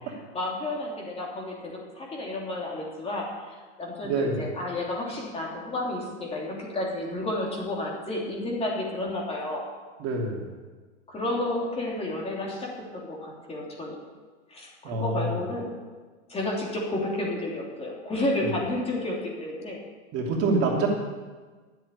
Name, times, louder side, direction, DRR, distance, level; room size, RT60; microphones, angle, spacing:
voice 1, 0.0-9.6 11.1-14.0 14.5-15.7 16.3-19.8, left 1 dB, 15° left, -2 dB, 3.1 m, -31 dB
voice 2, 4.0-4.4 10.0-10.5 14.8-15.4 18.4-18.5 20.1-20.9, right 3 dB, 40° right, -1 dB, 2.8 m, -26 dB
11.0 x 7.8 x 10.0 m, 1.4 s
hypercardioid pair, 130°, 37 cm